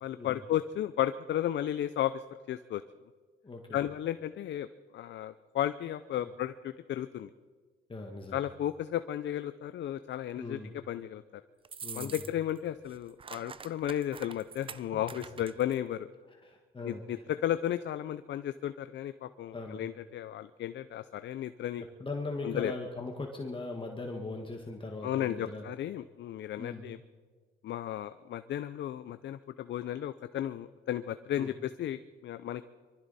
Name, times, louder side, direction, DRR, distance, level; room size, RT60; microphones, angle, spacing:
voice 1, 0.0-2.8 3.7-4.7 4.9-7.3 8.3-10.6 10.9-11.2 11.9-16.1 16.8-21.8 22.4-22.7 25.0-27.0 27.6-32.7, left 11 dB, 65° left, 12 dB, 0.6 m, -34 dB
voice 2, 3.4-3.8 6.2-6.3 7.9-8.4 10.4-10.7 11.8-12.1 14.9-15.4 16.3-17.2 19.5-19.8 21.8-25.6 26.6-26.9 31.4-31.5, left 3 dB, 25° left, 2 dB, 1.7 m, -40 dB
opening Padlock, 11.6-12.6 12.8-15.8, right 6 dB, 25° right, 0.5 m, -45 dB
23.5 x 14.0 x 4.2 m, 1.5 s
cardioid pair, 90°, 20 cm